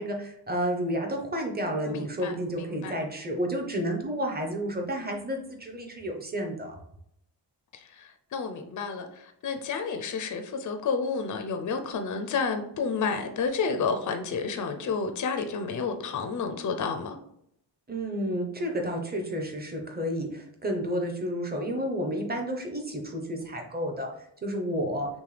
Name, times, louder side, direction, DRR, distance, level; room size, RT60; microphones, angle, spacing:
voice 1, 0.0-6.8 17.9-24.1 24.4-25.1, equal, 20° right, 0.7 m, -31 dB
voice 2, 1.8-3.0 7.7-17.2, left 5 dB, 45° left, 0.4 m, -31 dB
5.9 x 2.2 x 3.2 m
wide cardioid pair, 155°, 44 cm